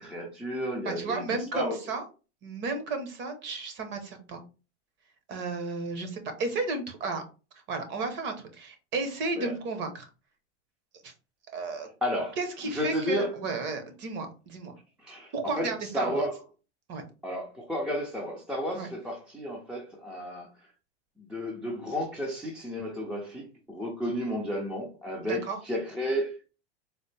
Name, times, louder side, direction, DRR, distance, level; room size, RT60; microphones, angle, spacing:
voice 1, 0.0-1.8 9.4-9.5 12.0-12.4 12.6-13.4 15.0-16.4 17.2-20.5 21.2-26.5, equal, 5° right, 0.4 m, -32 dB
voice 2, 0.8-2.0 2.4-4.4 5.3-7.2 7.7-10.1 11.0-11.1 11.5-11.9 12.4-14.7 15.3-16.2 16.9-17.0 18.7-18.9 25.3-25.6, right 3 dB, 35° right, 0.9 m, -33 dB
4.1 x 2.1 x 3.2 m
supercardioid pair, 135°, 34 cm